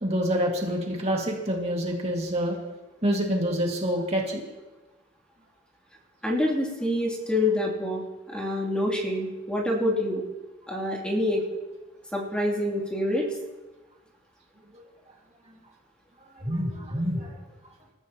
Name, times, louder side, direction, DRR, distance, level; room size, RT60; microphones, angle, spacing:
voice 1, 0.0-2.6 3.0-4.4 14.7-14.8 15.5-15.6 16.2-17.4, equal, 35° right, -1 dB, 2.1 m, -27 dB
voice 2, 6.2-8.0 8.3-10.2 10.7-11.4 12.1-13.3, left 1 dB, 5° left, -2 dB, 2.8 m, -26 dB
27.5 x 14.5 x 3.0 m, 1.1 s
head